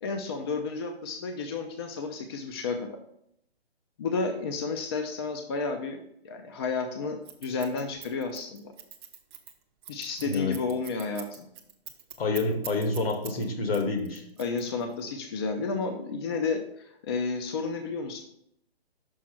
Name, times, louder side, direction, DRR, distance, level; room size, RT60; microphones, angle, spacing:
voice 1, 0.0-3.0 4.0-6.0 6.2-8.6 9.9-11.5 14.4-18.2, left 4 dB, 25° left, 5 dB, 0.4 m, -31 dB
Scissors, 7.2-13.4 13.7-15.0, right 10 dB, 25° right, 0.6 m, -43 dB
voice 2, 10.2-10.6 12.2-14.2, left 3 dB, 65° left, 5 dB, 1.6 m, -28 dB
6.2 x 4.1 x 5.9 m, 0.74 s
hypercardioid pair, 145°, 32 cm